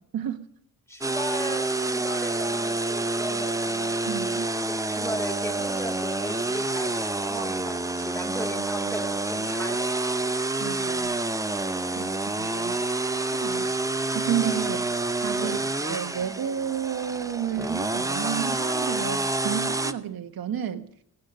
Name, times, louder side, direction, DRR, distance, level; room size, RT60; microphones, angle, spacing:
voice 1, 0.1-0.5 4.1-4.5 10.6-11.1 11.9-12.8 13.3-13.7 14.1-14.9 15.2-20.9, right 9 dB, 70° right, 8 dB, 1.2 m, -31 dB
voice 2, 0.9-4.1 4.8-10.2 13.5-13.7 15.4-15.6, equal, 5° left, 5 dB, 2.7 m, -37 dB
sound 1, 1.0-19.9, right 2 dB, 10° right, 0.7 m, -28 dB
17.0 x 11.5 x 6.5 m, 0.71 s
wide cardioid pair, 130°, 37 cm